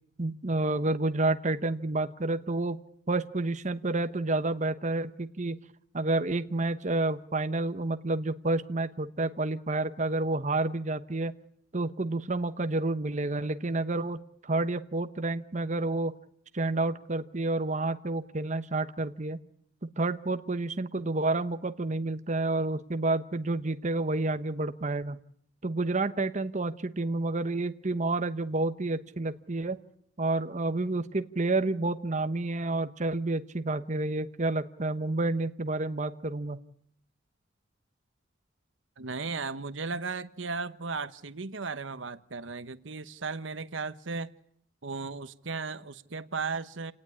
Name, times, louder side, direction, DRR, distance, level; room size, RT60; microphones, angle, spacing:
voice 1, 0.2-2.8 3.1-5.6 5.9-11.3 11.7-16.1 16.5-19.4 20.0-25.2 25.6-29.8 30.2-36.6, right 2 dB, 40° right, 1.0 m, -29 dB
voice 2, 39.0-44.3 44.8-46.9, right 4 dB, 80° right, 1.1 m, -35 dB
28.5 x 18.5 x 10.0 m
head